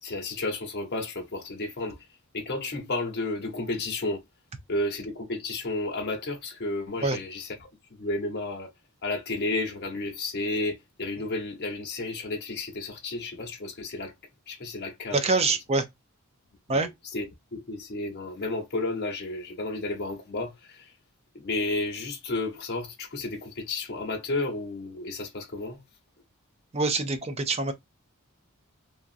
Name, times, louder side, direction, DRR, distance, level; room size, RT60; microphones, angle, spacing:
voice 1, 0.0-2.0 2.3-4.2 4.7-8.7 9.0-14.1 14.5-15.3 16.7-17.2 17.5-20.9 21.3-25.8, left 2 dB, 50° left, 0.9 m, -32 dB
voice 2, 15.1-15.9 16.7-16.9 26.7-27.7, right 3 dB, 30° right, 0.5 m, -25 dB
2.8 x 2.4 x 2.5 m
head